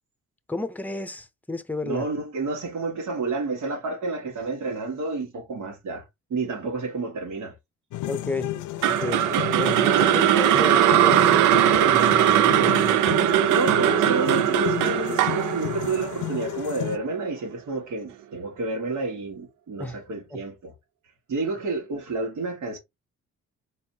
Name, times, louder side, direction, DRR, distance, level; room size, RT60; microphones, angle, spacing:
voice 1, 0.5-2.0 8.1-8.5 8.9-13.2 19.8-20.0 20.3-20.4, left 2 dB, 5° left, 0.7 m, -33 dB
voice 2, 1.8-7.6 13.5-20.7 21.3-22.8, right 3 dB, 70° right, 1.9 m, -30 dB
sound 1, 7.9-17.0, left 14 dB, 80° left, 0.6 m, -33 dB
sound 2, 8.8-17.0, right 11 dB, 85° right, 0.5 m, -20 dB
4.2 x 3.9 x 2.8 m
cardioid pair, 90°, 30 cm